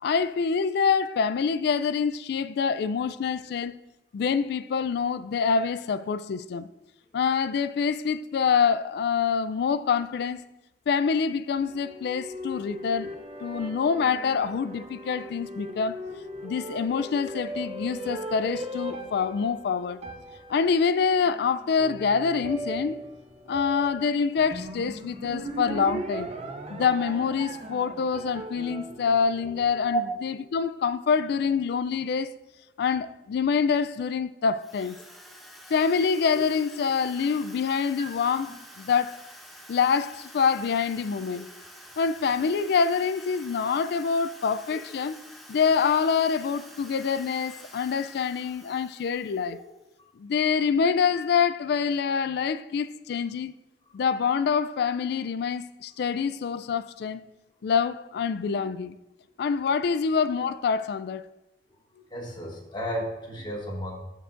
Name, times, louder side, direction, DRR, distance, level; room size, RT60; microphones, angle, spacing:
voice 1, 0.0-3.8 4.1-6.7 7.1-10.4 10.9-13.1 13.4-16.0 16.4-20.0 20.5-23.0 23.5-26.3 26.7-32.3 32.8-35.0 35.7-38.5 38.8-39.2 39.7-41.5 42.0-45.2 45.5-49.6 50.2-53.5 53.9-57.2 57.6-58.9 59.4-61.2, left 6 dB, 65° left, 0.3 m, -26 dB
sound 1, 11.6-30.1, right 1 dB, 35° right, 0.6 m, -38 dB
Drill, 34.6-49.8, equal, ahead, 0.9 m, -48 dB
voice 2, 62.1-64.0, right 1 dB, 25° left, 1.5 m, -31 dB
13.0 x 4.6 x 2.5 m
head